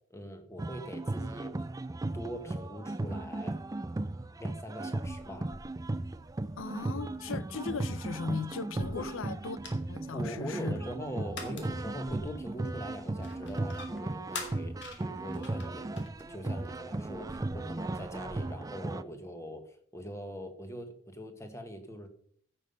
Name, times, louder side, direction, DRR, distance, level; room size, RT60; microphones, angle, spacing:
voice 1, 0.1-1.6 2.1-3.6 4.4-5.5 8.9-9.2 10.1-16.0 16.3-22.1, equal, 15° left, 1.3 m, -42 dB
sound 1, 0.6-19.0, right 2 dB, 15° right, 0.3 m, -36 dB
sound 2, 5.0-18.4, left 3 dB, 60° left, 2.1 m, -49 dB
voice 2, 6.6-10.7, left 5 dB, 75° left, 0.6 m, -38 dB
15.5 x 5.5 x 5.4 m
head